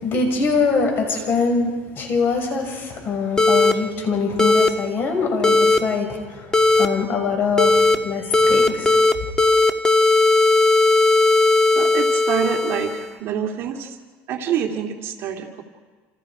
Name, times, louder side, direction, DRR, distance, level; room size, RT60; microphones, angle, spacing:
voice 1, 0.0-6.5 6.8-9.0, left 4 dB, 45° left, 3 dB, 6.2 m, -23 dB
sound 1, 3.4-3.7 4.4-4.7 5.4-5.8 6.5-6.9 7.6-8.0 8.3-9.1 9.4-13.1, left 3 dB, 10° left, 1.5 m, -16 dB
voice 2, 11.8-14.0 14.3-15.6, right 9 dB, 50° right, 1 dB, 2.5 m, -26 dB
28.5 x 28.0 x 5.0 m, 1.5 s
cardioid pair, 140°, 5 cm